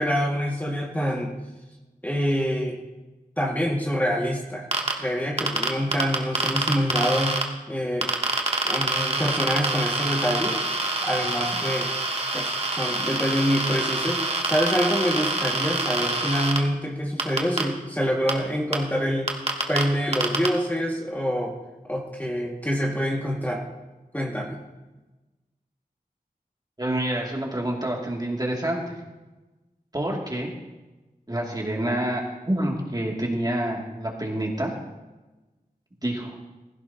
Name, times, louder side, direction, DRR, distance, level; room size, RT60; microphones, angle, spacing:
voice 1, 0.0-1.3 2.0-2.8 3.4-4.7 5.0-7.4 7.7-8.2 8.6-10.6 11.0-11.9 12.3-19.3 19.7-21.5 21.9-23.6 24.1-24.6, equal, 10° left, -2 dB, 2.0 m, -26 dB
sound 1, 4.7-4.9 5.4-7.4 8.0-16.6 17.2-17.6 18.3-18.4 18.7-18.8 19.3-19.8 20.1-20.5, right 2 dB, 45° right, 1.6 m, -25 dB
voice 2, 26.8-28.9 29.9-30.5 31.3-34.7 36.0-36.4, right 1 dB, 25° right, -2 dB, 2.6 m, -27 dB
16.0 x 15.5 x 2.9 m, 1.1 s
wide cardioid pair, 55°, 15 cm